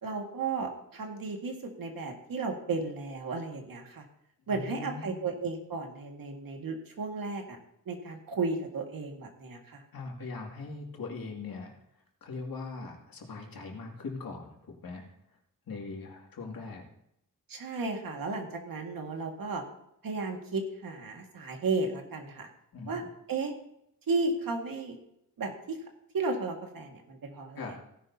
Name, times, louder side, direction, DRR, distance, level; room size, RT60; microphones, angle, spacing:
voice 1, 0.0-4.0 4.5-7.6 7.9-9.8 17.5-19.6 20.0-22.5 22.9-23.0 23.3-23.5 24.1-25.0 25.4-25.8 26.1-27.6, right 3 dB, 85° right, 2 dB, 2.0 m, -34 dB
voice 2, 4.4-5.2 9.9-11.7 12.2-15.0 15.7-16.8 22.7-23.0 27.6-27.7, left 4 dB, 90° left, 0 dB, 2.6 m, -40 dB
16.5 x 11.0 x 2.8 m, 0.78 s
wide cardioid pair, 125°, 34 cm